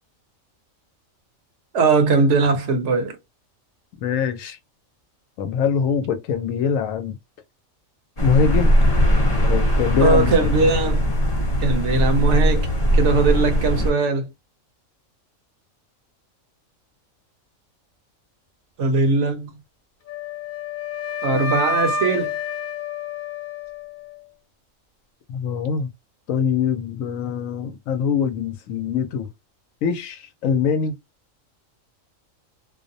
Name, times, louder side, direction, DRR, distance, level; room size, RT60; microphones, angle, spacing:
voice 1, 1.7-3.2 10.0-11.1 11.6-12.7 12.9-14.3 18.8-19.5 21.2-22.3, right 3 dB, 65° right, 0.9 m, -20 dB
voice 2, 4.0-4.6 5.4-7.2 8.2-8.7 9.4-10.6 25.3-25.9 26.3-29.3 29.8-30.9, left 6 dB, 80° left, 1.0 m, -23 dB
sound 1, 8.2-13.9, equal, 30° left, 1.0 m, -19 dB
Wind instrument woodwind instrument, 20.1-24.2, left 4 dB, 60° left, 0.5 m, -28 dB
2.5 x 2.0 x 2.6 m
omnidirectional pair, 1.4 m